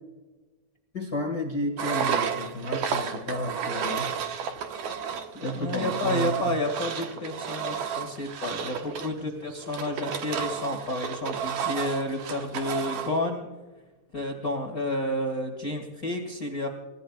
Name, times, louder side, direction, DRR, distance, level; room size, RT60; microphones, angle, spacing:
voice 1, 0.9-4.1 5.3-6.6, left 1 dB, 70° left, 2 dB, 0.8 m, -32 dB
Engine, 1.8-13.2, right 7 dB, 65° right, 1.9 m, -32 dB
voice 2, 5.5-13.5 14.1-16.7, left 1 dB, 40° left, 2 dB, 1.3 m, -30 dB
29.0 x 16.0 x 2.4 m, 1.2 s
omnidirectional pair, 4.9 m